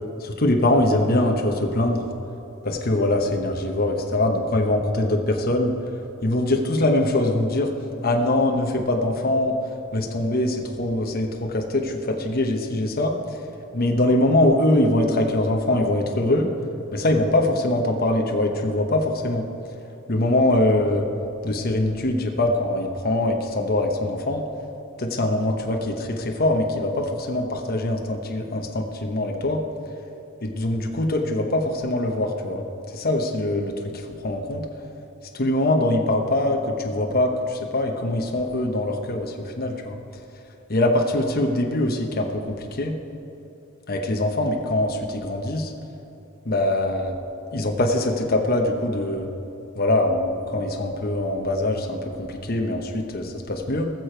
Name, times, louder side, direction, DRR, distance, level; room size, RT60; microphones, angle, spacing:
voice 1, 0.2-2.1 2.6-5.7 6.2-7.7 8.0-9.5 9.9-13.2 13.7-16.5 16.9-19.5 20.1-21.1 21.4-24.4 25.0-29.6 30.4-32.6 32.9-34.7 35.3-40.0 40.7-43.0 43.9-45.7 46.4-47.2 47.5-49.3 49.8-53.9, left 1 dB, 45° left, 2 dB, 1.0 m, -23 dB
20.0 x 6.7 x 4.5 m, 2.9 s
head